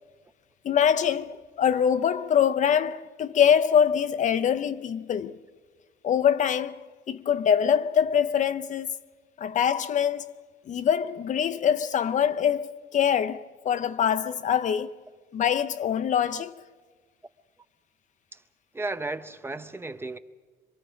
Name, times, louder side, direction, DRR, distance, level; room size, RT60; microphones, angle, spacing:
voice 1, 0.6-5.4 6.0-6.8 7.1-8.9 9.4-10.3 10.7-14.9 15.3-16.6, left 8 dB, 45° left, 0.6 m, -24 dB
voice 2, 18.7-20.2, right 2 dB, 15° right, 0.7 m, -34 dB
27.0 x 23.0 x 5.1 m
cardioid pair, 110°, 17 cm